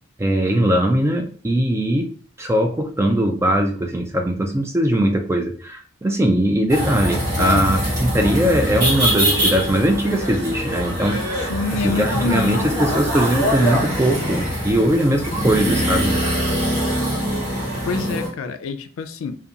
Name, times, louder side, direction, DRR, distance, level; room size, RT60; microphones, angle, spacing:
voice 1, 0.2-2.1 2.4-7.8 8.1-11.5 11.8-16.2, right 1 dB, 15° right, 4 dB, 0.3 m, -20 dB
sound 1, 6.7-18.3, equal, 40° right, 1.1 m, -23 dB
voice 2, 7.4-7.8 11.5-13.0 17.7-19.4, left 4 dB, 85° left, 8 dB, 0.3 m, -27 dB
2.4 x 2.2 x 2.7 m, 0.41 s
head